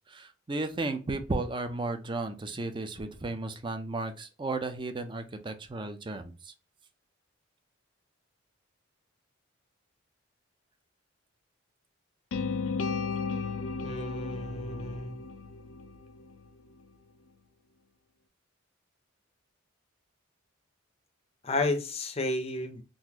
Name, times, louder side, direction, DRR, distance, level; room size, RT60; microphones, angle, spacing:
voice 1, 0.1-6.5, right 2 dB, 25° right, 0.5 m, -34 dB
sound 1, 12.3-16.4, left 4 dB, 90° left, 0.4 m, -34 dB
voice 2, 13.8-15.2 21.4-22.8, left 2 dB, 30° left, 0.6 m, -32 dB
3.9 x 2.5 x 2.8 m
head